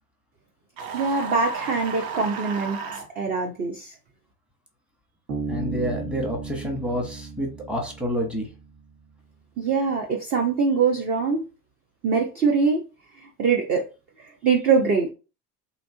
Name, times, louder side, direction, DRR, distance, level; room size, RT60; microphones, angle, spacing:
sound 1, 0.8-3.1, right 5 dB, 45° right, 0.7 m, -33 dB
voice 1, 0.9-2.8 3.2-3.9 9.6-11.4 12.0-12.8 13.4-13.8 14.4-15.1, right 5 dB, 20° right, 0.3 m, -23 dB
Bass guitar, 5.3-8.7, right 4 dB, 70° right, 1.0 m, -34 dB
voice 2, 5.5-8.5, equal, ahead, 0.8 m, -28 dB
2.7 x 2.2 x 2.6 m
hypercardioid pair, 75°, 48 cm